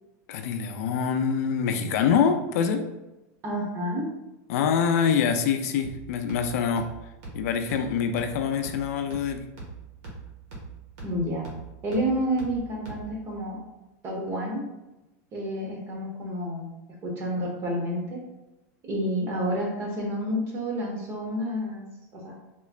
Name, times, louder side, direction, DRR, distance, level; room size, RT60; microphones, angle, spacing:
voice 1, 0.3-2.8 4.5-6.9 7.3-9.4, left 7 dB, 70° left, 7 dB, 0.4 m, -25 dB
voice 2, 3.4-4.0 11.0-11.5 11.8-13.6 14.0-14.6 15.3-16.7 17.0-18.2 18.9-21.8 22.1-22.4, equal, 30° right, -1 dB, 1.0 m, -29 dB
Deep Kick, 5.8-13.3, right 3 dB, 65° right, 1.4 m, -43 dB
3.7 x 3.1 x 2.4 m, 1.0 s
supercardioid pair, 155°, 9 cm